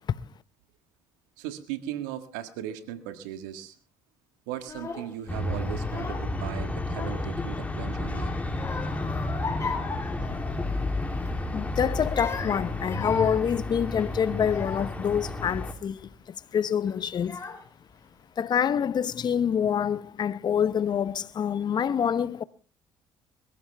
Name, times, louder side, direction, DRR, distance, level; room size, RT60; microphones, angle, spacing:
voice 1, 1.4-3.7 4.5-8.3, right 11 dB, 85° right, 1.7 m, -37 dB
Child speech kid speaking / Crying sobbing, 4.6-5.1 5.8-6.4 6.7-7.6 8.0-10.9 11.2-11.5 12.0-15.1 15.7-16.1 16.9-17.0 17.2-17.9, left 4 dB, 30° left, 4.0 m, -37 dB
sound 1, 5.3-15.7, left 2 dB, 15° left, 3.1 m, -31 dB
voice 2, 11.5-17.4 18.4-22.4, left 8 dB, 45° left, 0.9 m, -26 dB
21.5 x 14.5 x 3.4 m
supercardioid pair, 70°, 10 cm